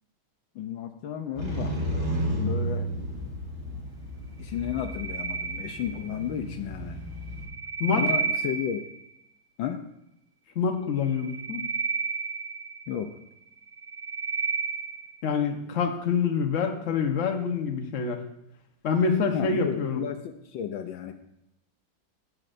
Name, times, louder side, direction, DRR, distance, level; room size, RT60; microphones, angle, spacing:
voice 1, 0.5-1.8 2.4-2.9 4.4-7.0 7.9-8.9 9.6-9.9 12.9-13.2 19.3-21.1, left 9 dB, 75° left, 7 dB, 1.4 m, -33 dB
Motorcycle, 1.4-7.4, right 1 dB, 35° right, 4.8 m, -33 dB
sound 1, 4.6-6.3 7.2-9.1 11.0-13.1 13.6-15.2, right 5 dB, 55° right, 1.4 m, -32 dB
voice 2, 10.5-11.6 15.2-18.2 18.8-20.0, left 5 dB, 45° left, 3 dB, 1.2 m, -26 dB
16.5 x 7.7 x 2.6 m, 0.84 s
omnidirectional pair, 2.3 m